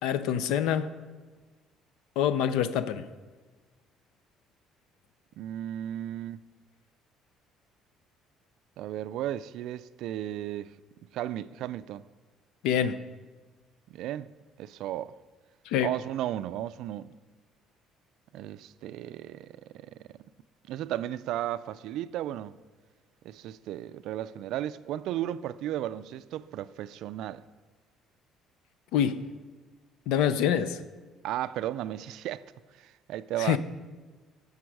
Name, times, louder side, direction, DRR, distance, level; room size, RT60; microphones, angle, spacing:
voice 1, 0.0-0.9 2.2-3.1 12.6-13.0 15.7-15.9 28.9-29.2 30.1-30.8 33.4-33.6, left 9 dB, 85° left, 0.5 m, -26 dB
voice 2, 5.4-6.4 8.8-10.7 11.1-12.1 13.9-14.3 14.6-15.2 15.8-17.1 18.3-20.2 20.7-22.5 23.2-27.4 31.2-32.4 32.7-33.6, right 12 dB, 65° right, 0.3 m, -35 dB
15.0 x 5.4 x 4.7 m
cardioid pair, 165°, 0 cm